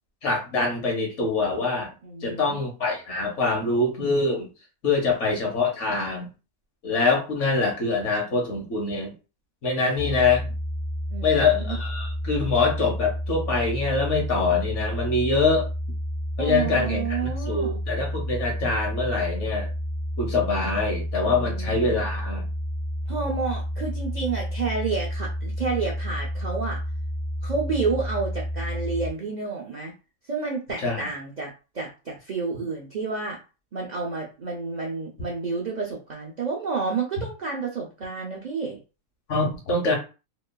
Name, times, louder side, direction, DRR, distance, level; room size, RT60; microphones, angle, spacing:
voice 1, 0.2-1.9 2.2-4.5 4.8-6.3 6.8-9.1 9.6-10.5 11.2-15.7 16.4-19.7 20.2-22.4 30.8-31.1 39.3-39.9, left 3 dB, 60° left, 0 dB, 1.2 m, -24 dB
voice 2, 2.0-2.6 11.1-11.8 16.4-17.8 21.2-22.0 23.1-26.8 27.4-29.9 30.2-33.4 33.7-38.8, right 4 dB, 90° right, -1 dB, 0.3 m, -30 dB
sound 1, 10.0-29.1, equal, 30° left, 0.6 m, -30 dB
2.9 x 2.2 x 2.2 m, 0.32 s
omnidirectional pair, 1.4 m